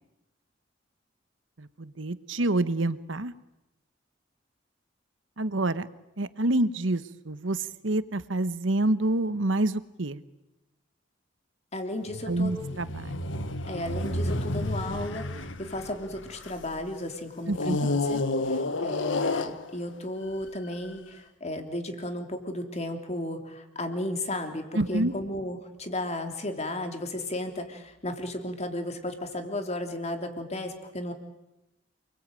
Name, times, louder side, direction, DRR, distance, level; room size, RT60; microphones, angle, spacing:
voice 1, 1.6-3.3 5.4-5.9 6.2-10.2 12.3-13.2 17.5-17.8 24.7-25.1, right 2 dB, 90° right, 14 dB, 1.2 m, -27 dB
voice 2, 11.7-12.5 13.7-31.1, left 1 dB, 35° left, 6 dB, 3.3 m, -34 dB
sound 1, 12.1-16.8 17.5-20.0 20.7-20.9, left 2 dB, 75° left, 1.4 m, -30 dB
29.0 x 21.0 x 9.1 m, 0.94 s
head